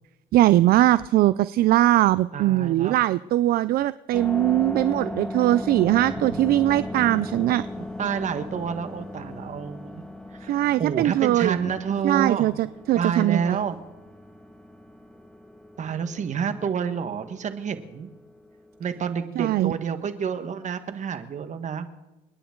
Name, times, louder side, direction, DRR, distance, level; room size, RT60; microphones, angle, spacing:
voice 1, 0.3-7.7 10.5-11.8 12.0-13.6 19.4-19.7, right 15 dB, 65° right, 16 dB, 0.4 m, -21 dB
voice 2, 2.3-3.0 6.3-7.2 7.7-10.0 10.3-12.5 12.9-13.8 15.8-18.1 18.8-21.9, right 7 dB, 45° right, 10 dB, 1.5 m, -29 dB
sound 1, 4.1-19.1, left 1 dB, 5° left, 1.4 m, -38 dB
29.0 x 10.0 x 3.8 m, 1.0 s
cardioid pair, 110°, 17 cm